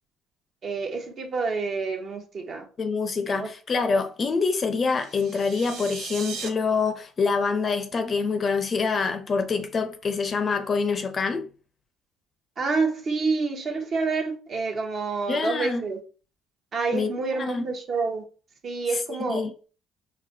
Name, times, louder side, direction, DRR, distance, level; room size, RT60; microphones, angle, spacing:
voice 1, 0.6-2.7 3.2-3.5 12.6-16.0 16.7-18.2 18.6-19.4, right 4 dB, 50° right, 0.8 m, -28 dB
voice 2, 2.8-11.5 15.3-15.9 16.9-17.1 17.4-17.7 19.3-19.5, left 4 dB, 40° left, 0.5 m, -26 dB
sound 1, 4.9-6.5, right 6 dB, 70° right, 0.6 m, -38 dB
4.0 x 2.1 x 2.7 m
supercardioid pair, 85°, 0 cm